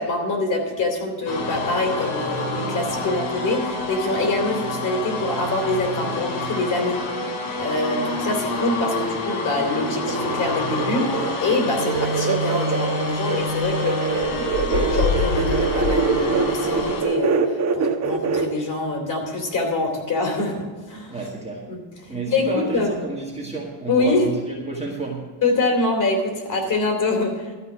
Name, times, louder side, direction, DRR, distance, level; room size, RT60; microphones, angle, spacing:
voice 1, 0.0-7.0 7.6-21.2 21.7-22.9 23.9-24.3 25.4-27.5, left 2 dB, 40° left, 2 dB, 3.2 m, -25 dB
sound 1, 1.3-17.0, left 2 dB, 65° left, 3.2 m, -27 dB
sound 2, 9.7-18.5, right 5 dB, 35° right, 1.1 m, -24 dB
voice 2, 21.1-21.7 22.1-25.3, right 3 dB, 15° right, -2 dB, 1.9 m, -30 dB
13.0 x 5.4 x 8.7 m, 1.4 s
cardioid pair, 135°, 49 cm